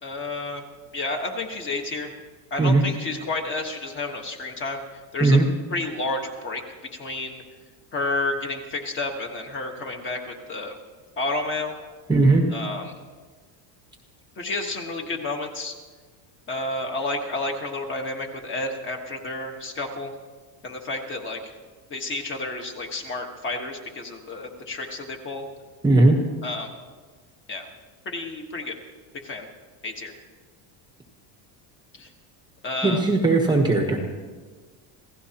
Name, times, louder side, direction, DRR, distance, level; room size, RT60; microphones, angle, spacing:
voice 1, 0.0-0.6 0.9-2.1 2.5-4.8 5.1-5.4 5.7-6.6 7.0-7.4 7.9-10.8 11.2-11.7 12.5-12.9 14.4-15.7 16.5-20.1 20.6-21.5 21.9-25.5 26.4-26.7 27.5-27.7 28.0-28.8 29.2-29.5 29.8-30.1 31.9-32.1 32.6-33.0, left 2 dB, 25° left, 3 dB, 1.3 m, -30 dB
voice 2, 12.1-12.4 25.8-26.2 32.8-34.0, right 2 dB, 10° right, 2 dB, 1.0 m, -18 dB
27.0 x 16.5 x 2.9 m, 1.4 s
cardioid pair, 175°, 48 cm